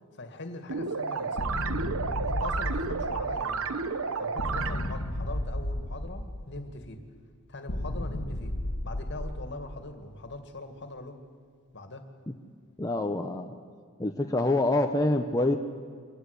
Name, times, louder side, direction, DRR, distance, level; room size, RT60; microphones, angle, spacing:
voice 1, 0.1-1.7 2.2-3.7 4.2-7.0 7.5-8.6 8.8-11.2 11.7-12.1, left 2 dB, 55° left, 7 dB, 2.1 m, -41 dB
sound 1, 0.7-5.1, right 5 dB, 65° right, 0.9 m, -32 dB
sound 2, 1.4-3.7 4.4-6.7 7.7-9.9, left 1 dB, 80° left, 1.5 m, -33 dB
voice 2, 12.8-13.5 14.0-15.6, left 2 dB, 15° left, 3 dB, 0.8 m, -26 dB
26.0 x 18.0 x 8.3 m, 2.1 s
head